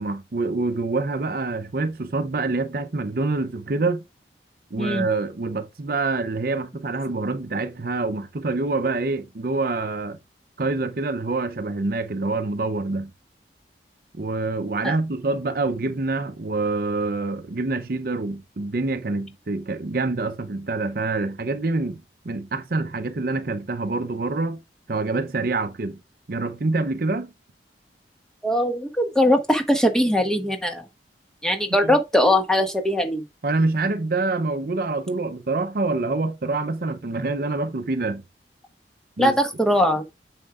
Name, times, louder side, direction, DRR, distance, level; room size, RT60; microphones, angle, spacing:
voice 1, 0.0-4.0 4.7-10.2 10.6-13.1 14.1-24.6 24.9-26.0 26.3-27.3 31.8-32.0 33.4-38.2 39.2-39.3, right 3 dB, 55° right, 0.6 m, -26 dB
voice 2, 28.4-30.8 31.4-33.2 39.2-40.0, left 1 dB, 5° left, 1.5 m, -21 dB
9.0 x 6.4 x 2.4 m
head